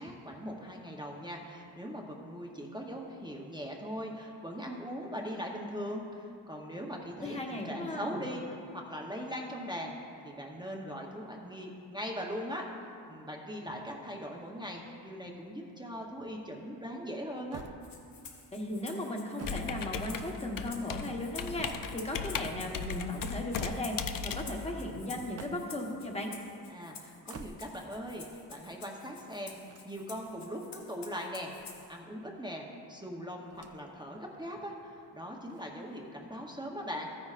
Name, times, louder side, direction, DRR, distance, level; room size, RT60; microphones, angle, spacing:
voice 1, 0.0-9.9 10.2-12.7 13.1-17.6 26.7-31.5 31.9-37.3, equal, 10° right, -2 dB, 0.8 m, -40 dB
voice 2, 7.2-8.2 18.5-26.3, left 1 dB, 15° left, 0 dB, 1.1 m, -36 dB
sound 1, 17.5-18.3 19.1-20.5 21.1-22.2 23.3-24.0 25.1-25.9 27.1-28.0 29.5-30.4 31.3-32.3 33.5-34.0 34.4-34.5 35.4-36.2, right 5 dB, 40° right, 0.5 m, -50 dB
Rattle (instrument), 17.8-32.0, left 5 dB, 85° left, 1.5 m, -51 dB
Computer keyboard, 19.4-25.4, left 6 dB, 55° left, 0.5 m, -37 dB
14.0 x 9.7 x 2.4 m, 2.5 s
wide cardioid pair, 125°, 41 cm